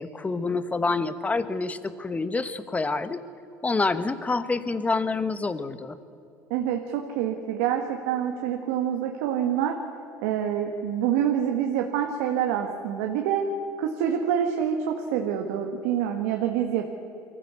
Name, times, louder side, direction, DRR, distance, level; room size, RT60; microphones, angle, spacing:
voice 1, 0.0-3.2 3.6-6.0, left 3 dB, 20° left, 13 dB, 1.2 m, -27 dB
voice 2, 6.5-9.8 10.2-13.5 13.8-16.9, right 9 dB, 80° right, 3 dB, 1.7 m, -26 dB
23.0 x 15.0 x 8.3 m, 2.9 s
supercardioid pair, 95°, 8 cm